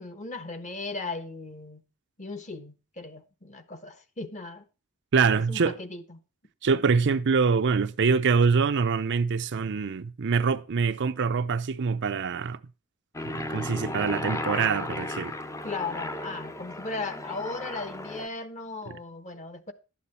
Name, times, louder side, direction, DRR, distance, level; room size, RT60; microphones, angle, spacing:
voice 1, 0.0-1.8 2.2-4.6 5.4-6.2 15.6-19.7, left 3 dB, 35° left, 1.1 m, -37 dB
voice 2, 5.1-5.7 6.6-12.6 13.2-15.4 18.9-19.0, right 5 dB, 55° right, 0.5 m, -24 dB
Aircraft, 13.1-18.3, left 2 dB, 15° left, 0.6 m, -35 dB
11.5 x 8.4 x 4.2 m
head